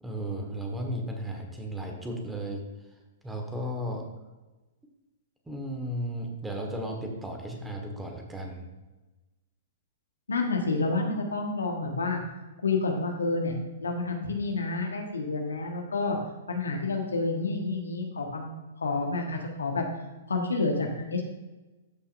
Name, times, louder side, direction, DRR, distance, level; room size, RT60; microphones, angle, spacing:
voice 1, 0.0-2.6 3.2-4.1 5.5-8.6, equal, 10° right, 2 dB, 1.4 m, -34 dB
voice 2, 10.3-12.2 12.6-13.5 13.8-16.2 16.5-18.5 18.8-19.8 20.3-21.2, left 3 dB, 80° left, 2 dB, 1.3 m, -29 dB
13.0 x 5.7 x 2.6 m, 1.1 s
figure-of-eight pair, 110°, 0 cm